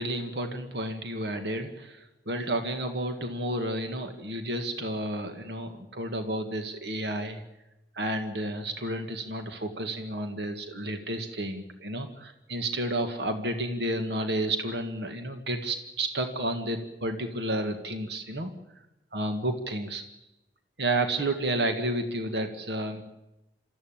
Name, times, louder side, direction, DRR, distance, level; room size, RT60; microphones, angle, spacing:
voice 1, 0.0-7.4 8.0-18.5 19.1-20.0 20.8-23.0, right 1 dB, 70° right, 6 dB, 1.8 m, -31 dB
27.5 x 14.0 x 8.9 m, 0.94 s
head